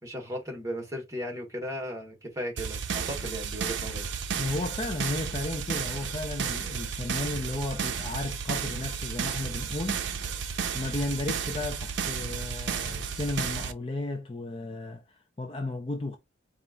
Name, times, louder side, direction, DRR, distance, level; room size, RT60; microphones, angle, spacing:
voice 1, 0.0-4.1, equal, 15° right, 1.4 m, -36 dB
sound 1, 2.6-13.7, right 6 dB, 65° right, 0.5 m, -33 dB
voice 2, 4.4-10.0 10.7-16.2, left 2 dB, 25° left, 0.5 m, -34 dB
4.3 x 2.5 x 3.7 m
head